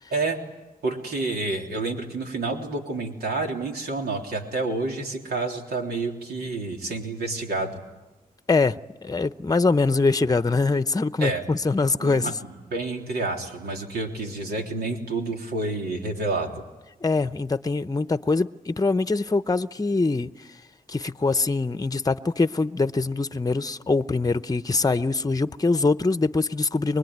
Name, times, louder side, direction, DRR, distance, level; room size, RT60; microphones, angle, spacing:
voice 1, 0.8-7.8 11.2-11.4 12.0-16.6, right 3 dB, 90° right, 3.5 m, -29 dB
voice 2, 8.5-12.3 17.0-20.3 20.9-27.0, left 3 dB, 25° left, 0.8 m, -23 dB
24.5 x 20.5 x 9.5 m
cardioid pair, 60°, 16 cm